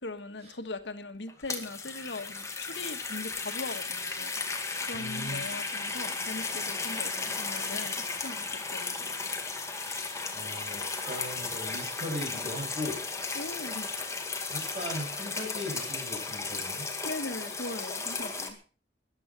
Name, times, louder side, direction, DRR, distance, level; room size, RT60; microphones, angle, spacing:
voice 1, 0.0-4.3 4.8-9.1 13.3-13.9 17.0-18.6, left 2 dB, 90° left, 9 dB, 1.5 m, -40 dB
sound 1, 1.3-18.5, left 4 dB, 15° left, 2.0 m, -35 dB
voice 2, 4.9-5.4 9.8-13.0 14.5-16.9, left 1 dB, 40° right, 1 dB, 7.4 m, -38 dB
13.5 x 11.5 x 6.1 m, 0.38 s
head